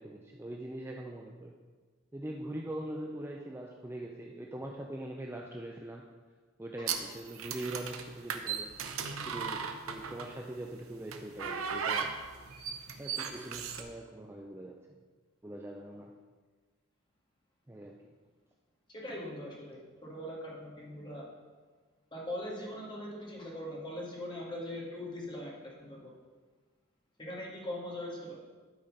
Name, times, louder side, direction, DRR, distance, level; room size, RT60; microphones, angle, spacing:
voice 1, 0.0-1.5 2.1-6.0 6.6-8.8 9.2-12.1 13.0-14.8 15.4-16.2 17.7-18.2, right 1 dB, 10° right, 0 dB, 0.4 m, -42 dB
sound 1, 6.9-10.4 11.1-13.8, right 6 dB, 85° right, 0.8 m, -36 dB
voice 2, 18.9-21.2 22.1-26.1 27.2-28.4, left 1 dB, 20° left, -3 dB, 1.8 m, -41 dB
12.0 x 4.3 x 5.1 m, 1.4 s
head